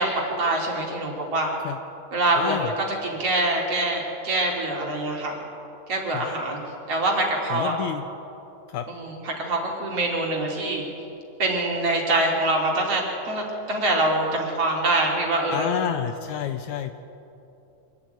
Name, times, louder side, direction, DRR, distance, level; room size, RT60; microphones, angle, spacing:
voice 1, 0.0-1.5 2.1-2.7 3.1-5.4 5.9-6.6 6.9-7.8 8.9-10.9 11.4-13.0 13.3-15.7, right 2 dB, 45° right, -1 dB, 4.1 m, -24 dB
voice 2, 2.4-2.7 6.1-6.3 7.5-8.0 8.7-8.9 15.5-17.0, left 9 dB, 75° left, 8 dB, 1.8 m, -29 dB
25.5 x 13.0 x 9.3 m, 3.0 s
omnidirectional pair, 3.8 m